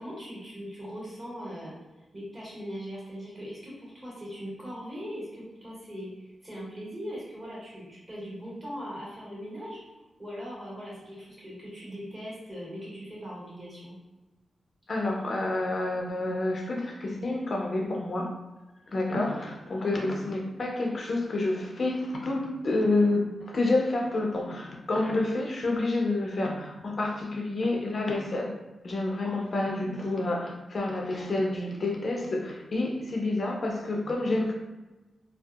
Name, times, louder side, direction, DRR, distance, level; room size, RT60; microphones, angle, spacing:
voice 1, 0.0-1.7 2.1-9.8 10.2-13.9 19.8-19.9 29.2-29.4, equal, 30° right, -7 dB, 1.4 m, -40 dB
voice 2, 14.9-18.3 18.9-28.5 28.8-34.5, left 2 dB, 45° left, 0 dB, 0.4 m, -28 dB
2.6 x 2.2 x 2.3 m, 1.1 s
cardioid pair, 95°, 0 cm